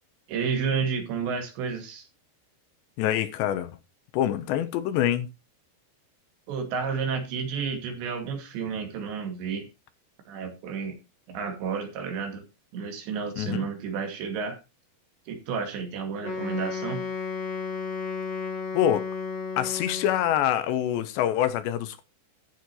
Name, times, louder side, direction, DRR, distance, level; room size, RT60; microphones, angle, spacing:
voice 1, 0.3-2.0 6.5-9.7 10.3-11.0 11.3-12.4 12.7-14.6 15.3-17.0, right 5 dB, 75° right, 4.6 m, -31 dB
voice 2, 3.0-3.7 4.1-5.3 13.4-13.7 18.7-19.1 19.6-22.0, left 11 dB, 80° left, 3.3 m, -25 dB
Wind instrument woodwind instrument, 16.2-20.4, left 5 dB, 50° left, 2.6 m, -33 dB
14.5 x 6.6 x 4.3 m
omnidirectional pair, 5.1 m